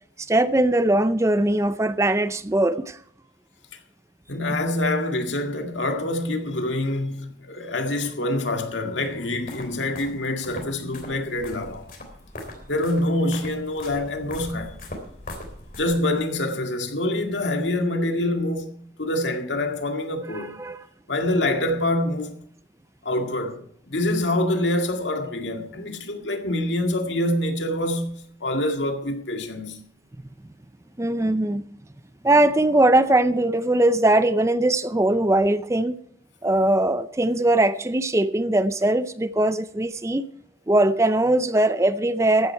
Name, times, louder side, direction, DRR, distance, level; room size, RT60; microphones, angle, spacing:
voice 1, 0.3-3.0 20.3-20.8 31.0-31.6 32.2-36.0 36.4-40.3 40.7-42.5, right 1 dB, 15° right, 0.5 m, -20 dB
voice 2, 4.3-11.8 12.7-14.7 15.8-20.5 21.1-22.3 23.1-23.6 23.9-29.8, left 1 dB, 90° left, 2.0 m, -26 dB
sound 1, 9.0-16.3, left 1 dB, 50° left, 3.3 m, -41 dB
14.5 x 11.0 x 4.6 m
head